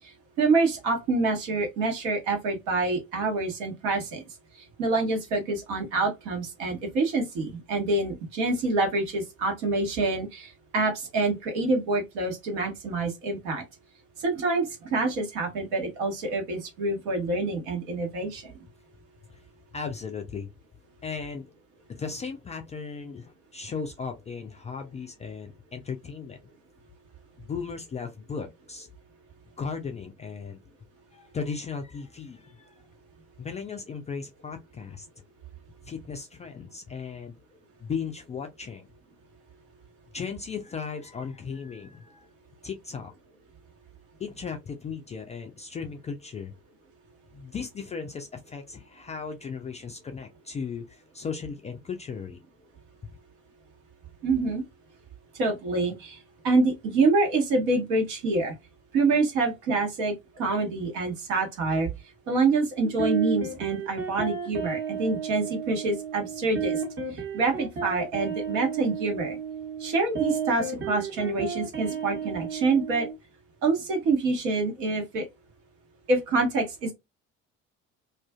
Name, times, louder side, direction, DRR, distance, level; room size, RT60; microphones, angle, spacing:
voice 1, 0.4-4.2 4.8-13.6 14.2-18.5 54.2-54.6 55.4-56.2 56.4-58.5 58.9-61.9 62.3-66.8 67.3-69.4 69.8-73.1 73.6-75.3 76.1-76.9, right 3 dB, 65° right, 1.1 m, -26 dB
voice 2, 19.7-20.5 21.0-21.5 21.9-26.4 27.4-28.9 29.6-30.6 31.1-32.7 33.4-35.1 35.8-37.3 37.8-38.9 40.1-42.3 42.6-43.1 44.2-46.5 47.3-52.4, left 5 dB, 20° left, 0.3 m, -36 dB
sound 1, 62.8-73.1, right 6 dB, 30° right, 1.0 m, -32 dB
2.4 x 2.3 x 2.2 m
figure-of-eight pair, 55°, 39 cm